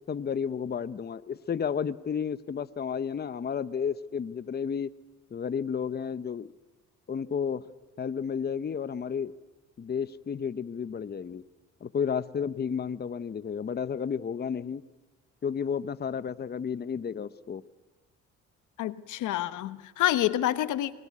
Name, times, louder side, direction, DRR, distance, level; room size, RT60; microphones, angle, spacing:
voice 1, 0.1-4.9 5.3-6.5 7.1-7.6 8.0-9.3 9.8-11.4 11.8-14.8 15.4-17.6, left 7 dB, 35° left, 15 dB, 0.8 m, -32 dB
voice 2, 18.8-20.9, left 13 dB, 85° left, 13 dB, 1.2 m, -27 dB
25.5 x 22.0 x 9.6 m, 1.2 s
cardioid pair, 90°, 30 cm